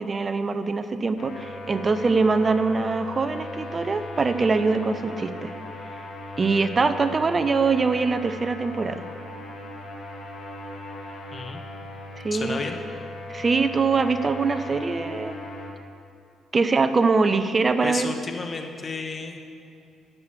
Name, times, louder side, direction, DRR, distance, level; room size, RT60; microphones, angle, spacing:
voice 1, 0.0-5.5 6.4-9.0 12.1-12.6 13.3-15.4 16.5-18.1, right 4 dB, 35° right, 10 dB, 0.7 m, -23 dB
sound 1, 1.2-15.7, left 2 dB, 65° left, 1.5 m, -38 dB
voice 2, 11.3-11.6 12.3-12.8 17.8-19.4, left 4 dB, 40° left, 5 dB, 1.2 m, -32 dB
10.5 x 6.7 x 7.2 m, 2.4 s
hypercardioid pair, 50°, 0 cm